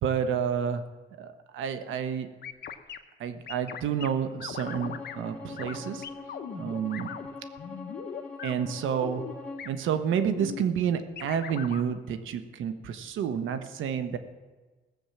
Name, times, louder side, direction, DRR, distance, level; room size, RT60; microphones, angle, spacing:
voice 1, 0.0-0.8 1.2-2.3 3.2-6.1 6.5-7.2 8.4-9.2 9.6-14.2, right 8 dB, 80° right, 9 dB, 1.1 m, -29 dB
sound 1, 2.4-3.0 3.5-4.1 4.4-5.2 5.6-5.8 6.0-7.3 7.6-8.5 8.9-9.3 9.6-9.7 10.1-10.6 11.2-11.8, left 8 dB, 55° left, 1.0 m, -39 dB
Bowed string instrument, 4.6-9.7, left 3 dB, 10° left, 2.9 m, -43 dB
17.0 x 7.2 x 7.3 m, 1.3 s
cardioid pair, 90°, 20 cm